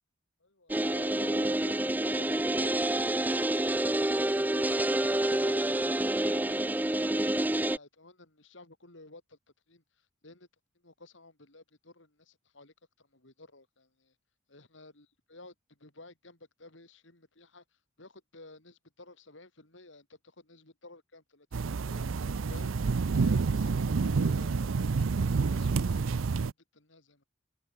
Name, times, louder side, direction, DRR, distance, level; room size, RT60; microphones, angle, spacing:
voice 1, 0.4-4.7 5.0-9.4 9.7-9.8 10.2-10.5 10.8-14.1 14.5-17.6 18.0-22.2 22.5-22.8 23.1-27.2, left 2 dB, 65° left, 3.7 m, -52 dB
sound 1, 0.7-7.8, right 1 dB, 10° right, 0.5 m, -28 dB
sound 2, 21.5-26.5, right 4 dB, 85° right, 0.5 m, -28 dB
head